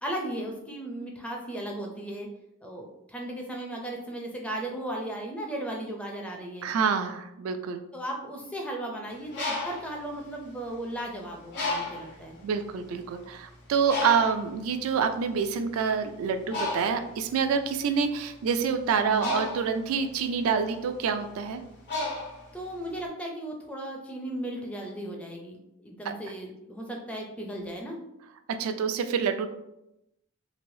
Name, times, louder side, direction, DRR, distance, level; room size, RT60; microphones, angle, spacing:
voice 1, 0.0-2.3 2.6-6.7 7.9-12.4 19.0-19.4 22.5-28.0, right 1 dB, 5° left, 0 dB, 0.4 m, -36 dB
voice 2, 6.6-7.8 12.4-21.6 28.6-29.5, right 6 dB, 85° right, 8 dB, 0.3 m, -27 dB
Bird, 9.1-11.0 11.5-12.2 12.9-13.0 13.3-23.0, left 2 dB, 55° left, 0.7 m, -34 dB
3.2 x 2.6 x 2.6 m, 0.86 s
head